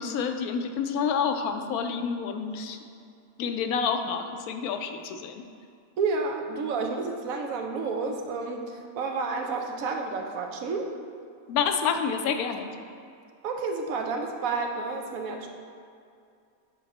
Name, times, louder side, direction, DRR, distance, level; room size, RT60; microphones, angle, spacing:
voice 1, 0.0-2.8 3.4-5.4 11.5-12.7, left 6 dB, 85° left, 7 dB, 1.1 m, -28 dB
voice 2, 6.0-10.9 13.4-15.5, right 4 dB, 75° right, 3 dB, 1.1 m, -30 dB
8.6 x 3.9 x 4.2 m, 2.4 s
omnidirectional pair, 1.5 m